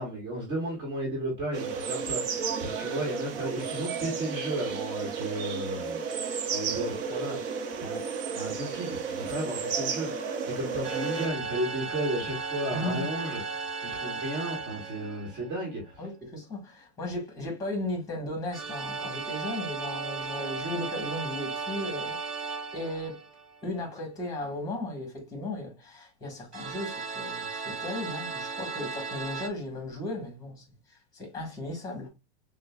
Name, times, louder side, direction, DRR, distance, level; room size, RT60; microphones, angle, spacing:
voice 1, 0.0-6.0 6.5-8.0 8.3-16.0, right 1 dB, 35° right, 1.5 m, -34 dB
sound 1, 1.5-11.3, right 6 dB, 55° right, 0.8 m, -33 dB
sound 2, 10.8-15.8 18.5-23.7 26.5-29.5, right 4 dB, 20° right, 0.3 m, -36 dB
voice 2, 12.7-13.1 16.0-22.2 22.7-23.2 23.6-30.6 31.1-32.1, left 1 dB, 10° left, 1.5 m, -35 dB
6.4 x 2.3 x 2.3 m
supercardioid pair, 150°, 33 cm